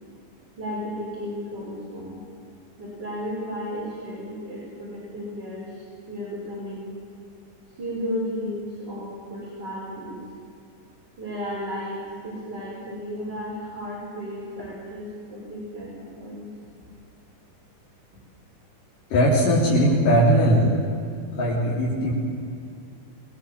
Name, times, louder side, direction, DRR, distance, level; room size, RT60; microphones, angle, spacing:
voice 1, 0.6-2.2 2.8-6.9 7.8-10.2 11.2-16.5, equal, 30° right, -6 dB, 5.7 m, -34 dB
voice 2, 19.1-20.8 21.3-22.1, equal, 80° left, -6 dB, 5.3 m, -19 dB
26.0 x 20.5 x 7.5 m, 2.5 s
omnidirectional pair, 3.8 m